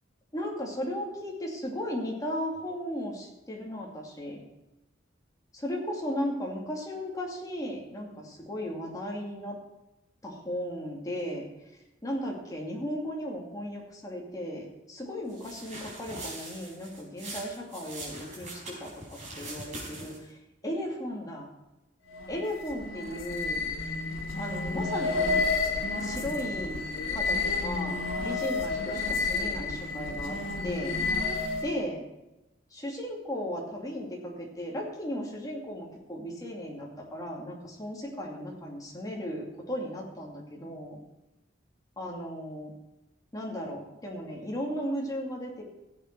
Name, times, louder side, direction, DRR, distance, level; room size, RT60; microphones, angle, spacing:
voice 1, 0.3-4.4 5.5-9.6 10.2-11.4 12.0-18.9 19.4-20.4 20.6-21.5 22.3-23.7 24.4-25.5 26.0-26.8 27.1-30.4 30.6-31.0 31.6-32.0 32.7-41.0 42.0-42.7 43.3-45.6, equal, 20° left, -1 dB, 2.5 m, -36 dB
sound 1, 15.3-20.3, right 2 dB, 40° right, 4.7 m, -42 dB
sound 2, 22.1-31.8, left 3 dB, 80° left, 1.8 m, -31 dB
15.5 x 8.5 x 4.7 m, 0.97 s
head